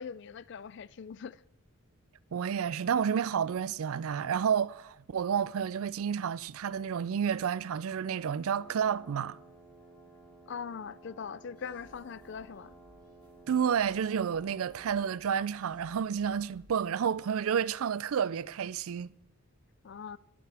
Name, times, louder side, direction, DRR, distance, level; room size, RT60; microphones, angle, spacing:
voice 1, 0.0-1.4 10.5-12.8 19.8-20.2, left 6 dB, 50° left, 0.4 m, -41 dB
voice 2, 2.3-9.4 13.5-19.1, right 7 dB, 70° right, 0.4 m, -30 dB
sound 1, 8.5-15.3, right 2 dB, ahead, 3.8 m, -55 dB
sound 2, 11.6-16.8, equal, 20° right, 2.4 m, -62 dB
22.5 x 9.4 x 3.4 m
head